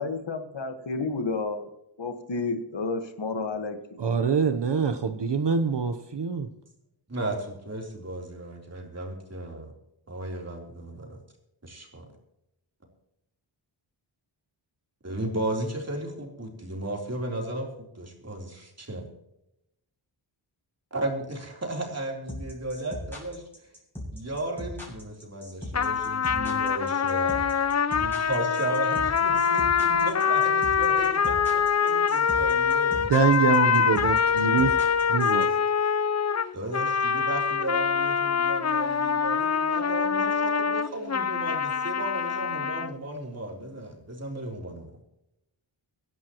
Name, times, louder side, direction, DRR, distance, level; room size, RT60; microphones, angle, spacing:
voice 1, 0.0-1.7 2.0-3.8 4.1-4.4, left 3 dB, 65° left, 1.6 m, -31 dB
voice 2, 4.0-6.5 33.0-34.7 35.1-35.6, right 5 dB, 60° right, 1.0 m, -24 dB
voice 3, 7.1-9.7 10.1-11.2 11.6-12.1 15.0-17.7 18.0-19.0 20.9-23.4 24.1-27.4 28.0-33.1 33.3-33.8 36.5-44.9, right 1 dB, 30° right, 3.5 m, -35 dB
sound 1, 22.3-35.4, equal, 5° left, 6.7 m, -38 dB
sound 2, 25.7-42.9, left 6 dB, 35° left, 0.5 m, -24 dB
23.5 x 11.0 x 3.0 m
wide cardioid pair, 100°, 47 cm